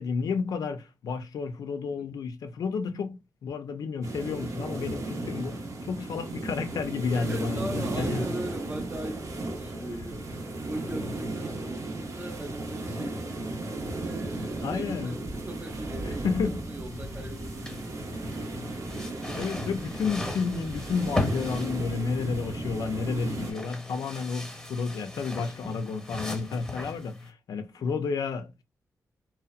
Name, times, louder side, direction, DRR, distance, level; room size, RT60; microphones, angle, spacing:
voice 1, 0.0-8.3 14.6-15.2 16.0-16.6 19.2-28.6, left 5 dB, 85° left, 0.4 m, -31 dB
Beach Waves Distant, 4.0-23.5, right 2 dB, 60° right, 0.6 m, -35 dB
voice 2, 7.1-13.6 13.9-18.2 19.0-19.6 26.8-27.0 27.8-27.9, right 1 dB, 20° right, 0.6 m, -40 dB
sound 1, 16.9-27.3, left 1 dB, 10° left, 0.9 m, -38 dB
2.7 x 2.0 x 2.3 m
wide cardioid pair, 100°, 6 cm